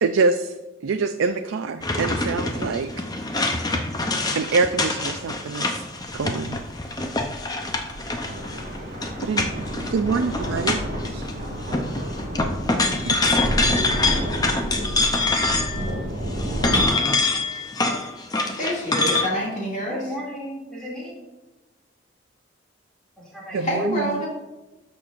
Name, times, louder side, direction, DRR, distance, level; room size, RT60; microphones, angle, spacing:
voice 1, 0.0-0.5 0.8-2.9 4.3-5.8 6.1-6.6 9.2-10.8 11.1-11.2 13.0-13.2 23.5-24.2, right 4 dB, 85° right, 8 dB, 0.4 m, -25 dB
sound 1, 1.8-11.3 11.6-15.9 16.3-19.3, left 2 dB, 20° left, 0.6 m, -25 dB
sound 2, 6.0-16.9, equal, 40° right, 2.9 m, -30 dB
voice 2, 18.6-20.0 23.6-24.3, equal, 40° left, -4 dB, 2.3 m, -26 dB
voice 3, 19.9-21.1 23.2-23.7, equal, 5° left, -7 dB, 2.5 m, -34 dB
12.5 x 6.5 x 2.5 m, 1.1 s
head